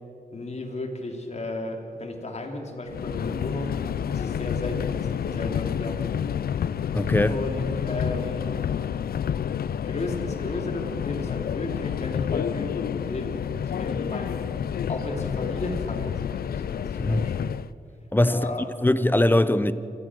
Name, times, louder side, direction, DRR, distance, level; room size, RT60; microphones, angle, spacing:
voice 1, 0.3-3.8 4.1-6.3 7.3-8.5 9.8-14.5 14.9-17.4 18.3-18.7, left 2 dB, 45° left, 3.0 m, -34 dB
Subway metro underground, 2.9-17.7, left 8 dB, 75° left, 0.5 m, -29 dB
voice 2, 6.9-7.3 17.0-17.2 18.1-18.5 18.8-19.7, left 1 dB, 15° left, 0.8 m, -21 dB
27.5 x 16.0 x 6.3 m
wide cardioid pair, 90°, 16 cm